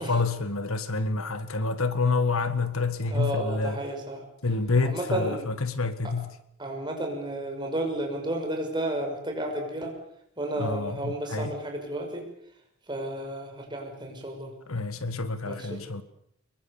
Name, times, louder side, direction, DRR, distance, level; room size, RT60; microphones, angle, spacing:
voice 1, 0.0-3.8 4.4-6.3 10.6-11.5 14.7-16.0, left 3 dB, 70° left, 1.6 m, -28 dB
voice 2, 3.1-4.2 4.8-5.4 6.0-6.1 6.6-9.9 10.4-12.2 12.9-14.5 15.5-15.8, right 1 dB, 20° right, 5.9 m, -32 dB
25.5 x 22.0 x 7.2 m
head